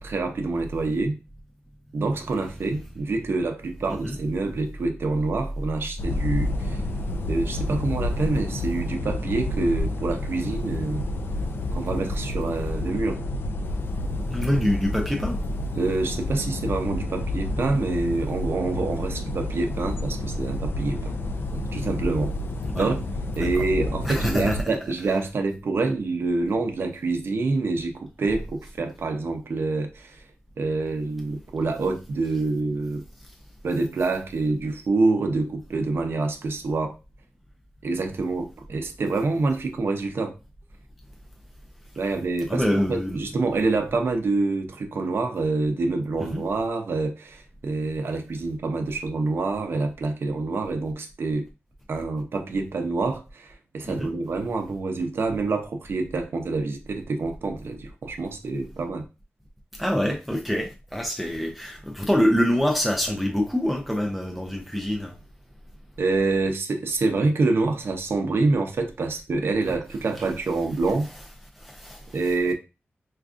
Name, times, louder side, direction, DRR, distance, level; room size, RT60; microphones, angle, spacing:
voice 1, 0.0-1.2 1.9-6.8 7.3-11.0 11.7-13.2 15.8-21.2 21.5-22.3 22.7-23.0 23.4-30.2 30.6-33.0 33.6-37.0 37.8-40.3 42.0-51.5 51.9-59.0 66.0-71.1 72.1-72.5, right 3 dB, 65° right, 0.6 m, -26 dB
sound 1, 6.0-24.6, left 2 dB, 60° left, 0.4 m, -29 dB
voice 2, 14.3-15.4 22.7-22.9 23.4-23.6 24.0-24.6 42.5-43.2 46.3-46.4 53.8-54.1 59.8-65.1 71.6-72.0, equal, ahead, 0.5 m, -25 dB
4.5 x 2.4 x 2.4 m
wide cardioid pair, 120°, 4 cm